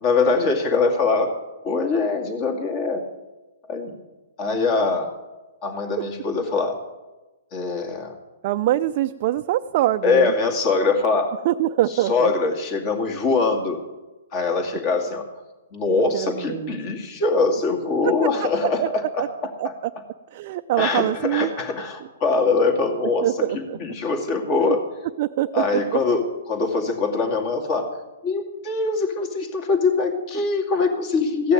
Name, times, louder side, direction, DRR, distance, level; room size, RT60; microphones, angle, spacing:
voice 1, 0.0-1.3 1.6-3.0 3.7-3.9 4.4-5.1 5.6-6.8 7.5-8.1 10.0-11.3 12.1-13.8 14.3-15.2 15.7-19.5 20.8-24.8 25.5-27.9 28.2-31.5, left 4 dB, 35° left, 3 dB, 2.4 m, -23 dB
voice 2, 8.4-10.3 11.4-12.3 15.9-16.8 18.0-18.1 18.4-18.9 19.2-19.3 19.6-19.7 20.3-21.5 23.2-23.8 24.6-24.8 25.2-25.6, right 14 dB, 45° right, 7 dB, 0.4 m, -24 dB
15.0 x 6.4 x 9.2 m, 1.1 s
hypercardioid pair, 145°, 0 cm